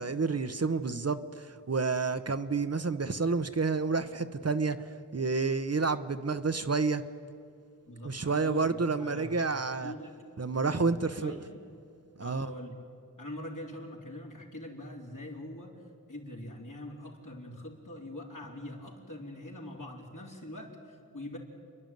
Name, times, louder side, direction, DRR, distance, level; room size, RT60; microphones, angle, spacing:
voice 1, 0.0-4.8 5.1-7.0 8.0-9.9 10.4-11.4 12.2-12.5, right 4 dB, 45° right, 10 dB, 0.9 m, -29 dB
voice 2, 7.9-10.2 10.6-11.6 12.2-12.8 13.2-15.8 16.1-21.4, left 1 dB, 60° left, -1 dB, 3.8 m, -43 dB
28.5 x 11.0 x 9.2 m, 2.4 s
wide cardioid pair, 40°, 35 cm